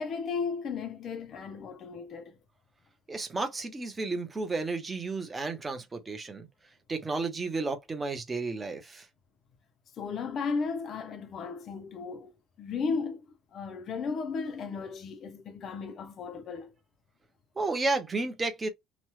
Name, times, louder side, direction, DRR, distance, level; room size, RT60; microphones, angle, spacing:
voice 1, 0.0-2.4 10.0-12.3 12.6-16.7, left 5 dB, 35° left, 0.5 m, -35 dB
voice 2, 3.1-6.5 6.9-9.1 17.6-18.7, right 3 dB, 15° right, 0.7 m, -32 dB
2.9 x 2.2 x 3.1 m
cardioid pair, 165°, 0 cm